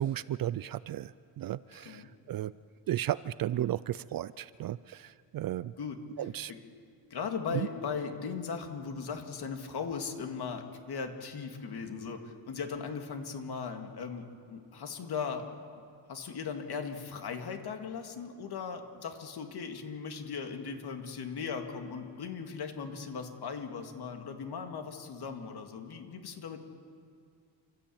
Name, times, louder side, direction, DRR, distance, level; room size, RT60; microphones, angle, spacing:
voice 1, 0.0-2.5 2.9-5.7 6.2-6.5 7.5-7.7, right 12 dB, 50° right, 17 dB, 0.5 m, -34 dB
voice 2, 7.1-15.5 16.1-26.6, left 5 dB, 55° left, 5 dB, 2.4 m, -38 dB
29.0 x 13.0 x 8.7 m, 2.3 s
cardioid pair, 130°, 47 cm